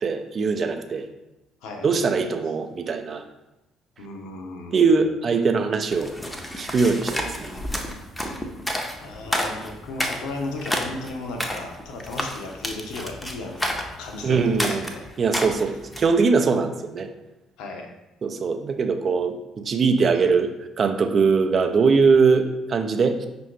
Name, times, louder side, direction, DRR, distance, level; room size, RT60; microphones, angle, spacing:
voice 1, 0.0-1.1 1.8-3.2 4.7-6.1 6.6-7.5 14.2-14.9 15.2-17.1 18.2-23.3, right 4 dB, 40° right, 6 dB, 0.4 m, -21 dB
voice 2, 4.0-5.0 8.2-8.3 9.0-15.0 17.6-17.9, left 2 dB, 60° left, 3 dB, 0.6 m, -35 dB
sound 1, 5.9-16.1, equal, 10° left, 0.6 m, -30 dB
5.5 x 2.6 x 3.1 m, 0.95 s
figure-of-eight pair, 50°, 0 cm